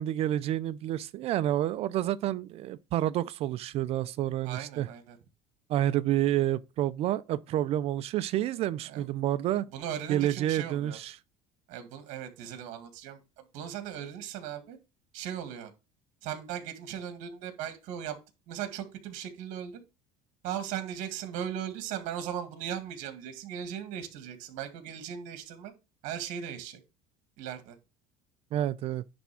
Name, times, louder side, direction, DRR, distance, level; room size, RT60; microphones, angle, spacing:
voice 1, 0.0-4.9 5.7-9.7 10.1-11.2 28.5-29.0, right 12 dB, 45° right, 0.4 m, -29 dB
voice 2, 4.4-5.2 8.9-9.1 9.7-11.0 11.7-14.8 15.1-15.7 16.2-18.2 18.5-19.8 20.4-25.7 26.0-26.8 27.4-27.8, right 9 dB, 65° right, 1.9 m, -38 dB
10.5 x 3.5 x 6.0 m
cardioid pair, 145°, 14 cm